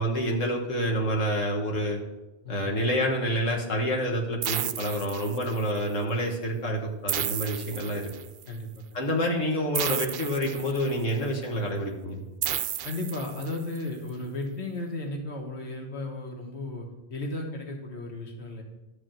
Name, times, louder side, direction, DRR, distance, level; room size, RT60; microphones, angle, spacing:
voice 1, 0.0-2.0 2.5-8.1 8.9-12.2, equal, 90° left, 1 dB, 1.9 m, -28 dB
voice 2, 2.4-2.8 8.5-8.7 12.8-18.6, left 2 dB, 60° left, 2 dB, 1.8 m, -35 dB
sound 1, 4.4-5.8 7.1-8.4 9.7-11.1 12.4-13.8, right 10 dB, 60° right, 0.7 m, -32 dB
12.0 x 5.0 x 7.6 m, 0.98 s
omnidirectional pair, 1.3 m